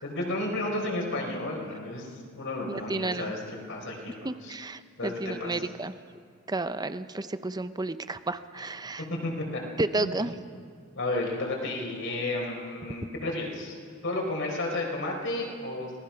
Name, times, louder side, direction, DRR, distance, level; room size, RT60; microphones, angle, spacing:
voice 1, 0.0-2.1 2.4-4.2 4.4-4.5 5.0-5.6 9.0-9.6 9.9-10.2 11.0-13.8 14.0-16.0, left 2 dB, 60° left, 0 dB, 4.5 m, -32 dB
voice 2, 2.7-3.3 4.2-5.9 6.5-9.1 9.8-10.3, right 2 dB, 20° right, 12 dB, 0.7 m, -32 dB
26.0 x 19.0 x 5.8 m, 2.2 s
head